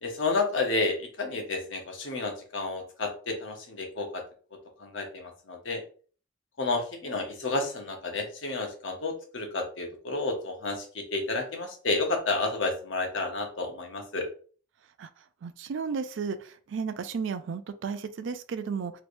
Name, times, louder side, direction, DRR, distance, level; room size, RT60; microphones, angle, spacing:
voice 1, 0.0-4.2 4.8-5.8 6.6-14.3, left 3 dB, 75° left, 2 dB, 0.9 m, -31 dB
voice 2, 15.4-18.9, right 5 dB, 75° right, 11 dB, 0.4 m, -33 dB
3.3 x 2.9 x 2.6 m, 0.41 s
head